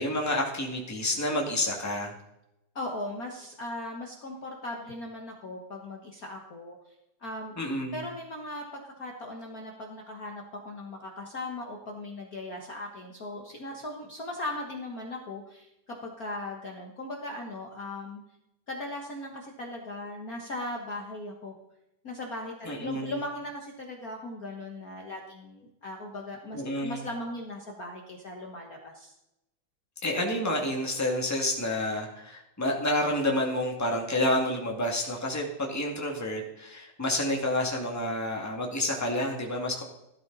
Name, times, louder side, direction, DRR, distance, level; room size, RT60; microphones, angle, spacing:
voice 1, 0.0-2.1 7.6-8.0 22.6-23.1 26.5-27.0 30.0-39.8, left 1 dB, 5° left, 0 dB, 1.4 m, -29 dB
voice 2, 2.7-6.8 7.2-7.5 7.9-18.2 18.7-21.5 22.0-29.1, left 1 dB, 65° left, 0 dB, 0.9 m, -38 dB
15.0 x 12.5 x 4.0 m, 0.88 s
omnidirectional pair, 3.9 m